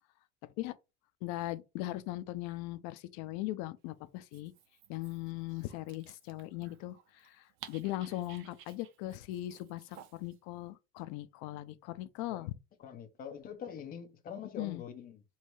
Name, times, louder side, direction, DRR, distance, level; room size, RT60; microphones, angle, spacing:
voice 1, 1.2-4.5 4.9-7.0 7.2-12.5 14.6-14.8, left 16 dB, 65° left, 0.5 m, -39 dB
Dog, 4.2-10.4, right 10 dB, 45° right, 0.5 m, -56 dB
voice 2, 12.8-15.2, left 7 dB, 30° left, 0.7 m, -44 dB
3.2 x 2.7 x 4.6 m
cardioid pair, 170°, 31 cm